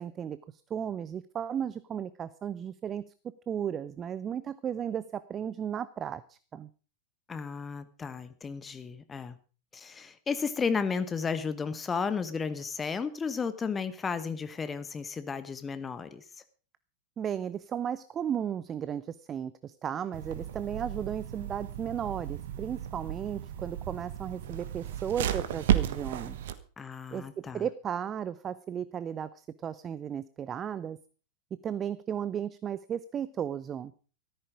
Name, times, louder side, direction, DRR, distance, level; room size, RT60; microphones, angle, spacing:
voice 1, 0.0-3.1 3.5-6.7 17.2-26.4 27.1-31.0 31.6-33.9, right 8 dB, 25° right, 16 dB, 0.6 m, -35 dB
voice 2, 7.3-9.3 9.7-16.2 26.8-27.6, left 5 dB, 15° left, 12 dB, 1.0 m, -33 dB
sound 1, 20.1-26.5, right 11 dB, 55° right, 1.4 m, -33 dB
14.0 x 13.5 x 5.0 m, 0.38 s
figure-of-eight pair, 90°, 0 cm